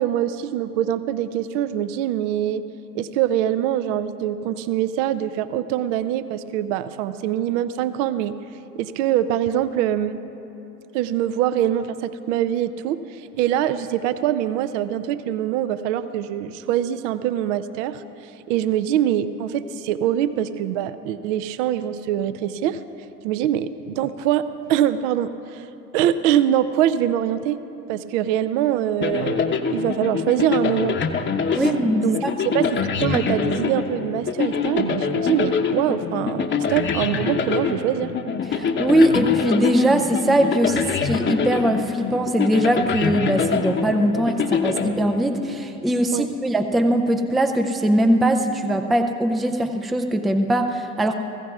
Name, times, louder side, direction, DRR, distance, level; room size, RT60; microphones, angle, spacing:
voice 1, 0.0-2.6 2.9-8.3 8.7-10.2 10.9-18.0 18.5-22.8 23.2-25.7 25.9-27.6 27.9-31.0 32.0-32.2 32.4-38.1 46.1-46.3, right 11 dB, 55° right, 12 dB, 0.6 m, -23 dB
sound 1, 29.0-45.6, left 6 dB, 25° left, 0.9 m, -25 dB
voice 2, 31.5-32.4 38.5-51.1, right 1 dB, ahead, 6 dB, 0.4 m, -21 dB
24.5 x 15.5 x 2.4 m, 2.9 s
hypercardioid pair, 80°, 46 cm